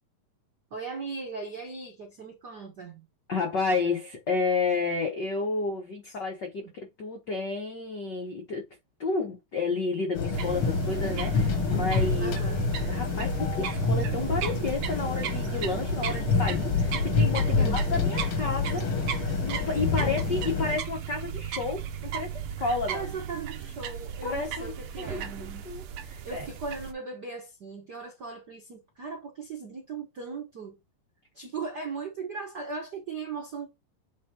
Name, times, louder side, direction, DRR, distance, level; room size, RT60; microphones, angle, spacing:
voice 1, 0.7-3.1 6.0-6.2 6.6-6.7 12.2-12.7 17.6-18.3 19.9-20.5 20.8-20.9 22.9-25.7 26.2-30.8 31.3-33.7, right 4 dB, 65° right, 1.0 m, -38 dB
voice 2, 3.3-6.6 7.0-8.7 9.0-12.3 12.9-18.8 19.2-23.0 24.2-24.7 25.0-25.2 25.6-26.4, left 4 dB, 75° left, 0.9 m, -31 dB
sound 1, 10.1-20.8, left 5 dB, 60° left, 1.4 m, -28 dB
sound 2, 10.3-26.9, right 9 dB, 90° right, 1.2 m, -35 dB
7.3 x 3.8 x 4.4 m
omnidirectional pair, 3.8 m